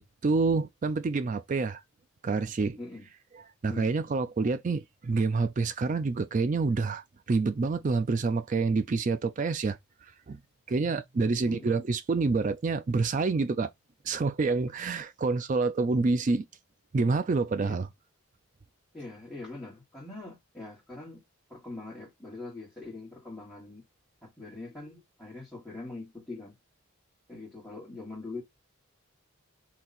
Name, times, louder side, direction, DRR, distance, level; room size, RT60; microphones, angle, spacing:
voice 1, 0.0-1.8 2.2-2.8 3.6-9.8 10.3-10.4 10.7-13.7 14.0-16.5 16.9-17.9, right 4 dB, 35° right, 0.3 m, -27 dB
voice 2, 2.8-3.1 3.7-3.9 11.2-11.8 17.6-17.7 18.9-21.2 21.5-23.8 24.2-26.5 27.3-28.4, left 2 dB, 5° left, 1.7 m, -43 dB
3.8 x 2.8 x 4.2 m
head